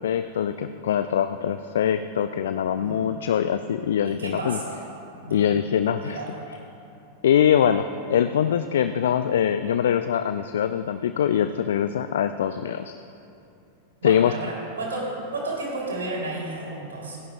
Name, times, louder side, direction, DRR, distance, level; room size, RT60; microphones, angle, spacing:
voice 1, 0.0-4.6 5.3-6.2 7.2-13.0 14.0-14.3, left 9 dB, 60° left, 11 dB, 0.3 m, -23 dB
voice 2, 2.7-3.1 4.0-4.8 5.2-5.4 6.0-6.3 14.0-17.2, right 2 dB, 70° right, -3 dB, 3.3 m, -32 dB
27.0 x 11.0 x 2.5 m, 2.7 s
figure-of-eight pair, 90°, 0 cm